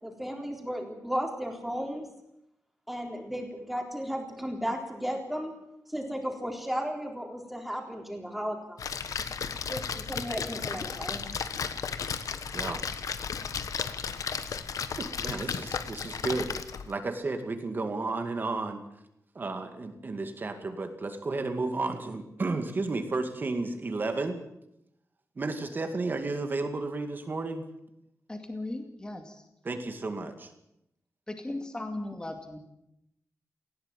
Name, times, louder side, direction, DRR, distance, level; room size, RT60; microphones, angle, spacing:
voice 1, 0.0-2.1 2.9-5.5 5.9-8.8 9.7-11.2, equal, 5° right, 2 dB, 3.7 m, -34 dB
Splash splatter, 8.8-16.9, left 6 dB, 90° left, 1.3 m, -34 dB
voice 2, 14.9-16.6 16.9-18.8 19.3-24.4 25.4-27.7 29.6-30.5, right 3 dB, 35° right, 6 dB, 2.3 m, -32 dB
voice 3, 28.3-29.4 31.3-32.6, left 2 dB, 15° left, 5 dB, 2.4 m, -37 dB
18.5 x 16.5 x 9.1 m, 0.82 s
wide cardioid pair, 180°, 6 cm